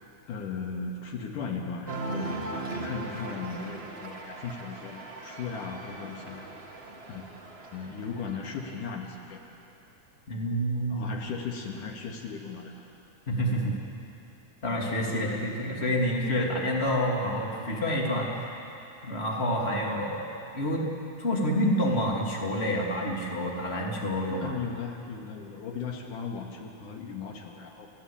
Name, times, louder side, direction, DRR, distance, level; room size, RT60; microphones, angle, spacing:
voice 1, 0.3-2.5 2.8-6.7 7.1-7.2 7.7-9.5 10.9-12.9 24.4-27.9, left 5 dB, 75° left, 1 dB, 3.4 m, -37 dB
Cheering, 1.8-8.9, right 2 dB, 25° right, 1.3 m, -39 dB
voice 2, 10.3-11.1 13.3-13.7 14.6-18.5 19.0-20.2 20.5-20.8 21.2-24.5, equal, 20° left, -2 dB, 3.0 m, -28 dB
29.5 x 16.0 x 8.7 m, 2.8 s
omnidirectional pair, 3.7 m